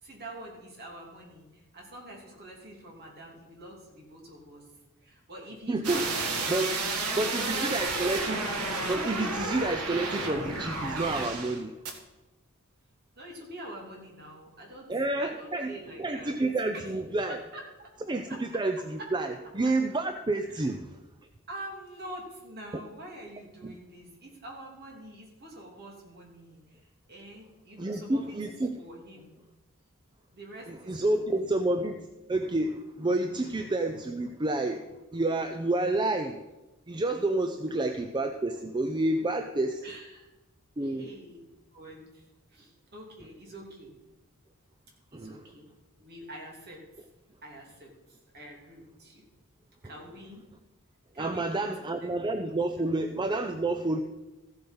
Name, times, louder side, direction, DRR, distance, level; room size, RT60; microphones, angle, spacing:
voice 1, 0.0-4.7 5.0-6.7 7.1-8.0 13.1-14.9 15.2-16.3 16.7-17.0 17.3-17.9 18.3-18.4 19.0-19.1 20.4-20.6 21.5-29.3 30.3-31.5 39.8-40.3 40.8-41.4 41.7-42.2 42.5-43.9 45.1-45.7 46.0-46.8 47.4-49.2 49.8-50.4 51.1-52.1 52.7-52.9, right 1 dB, 45° right, -1 dB, 3.2 m, -46 dB
voice 2, 5.7-6.1 6.5-6.7 7.1-8.4 8.9-11.7 14.9-15.7 16.0-17.4 18.1-21.0 23.6-23.7 27.8-28.8 30.7-36.4 36.9-39.8 40.8-41.1 45.1-45.4 51.2-54.0, right 2 dB, 20° right, 7 dB, 0.5 m, -29 dB
sound 1, 5.8-11.6 11.9-12.0, right 3 dB, 85° right, 2.0 m, -31 dB
14.5 x 7.7 x 5.5 m, 1.1 s
head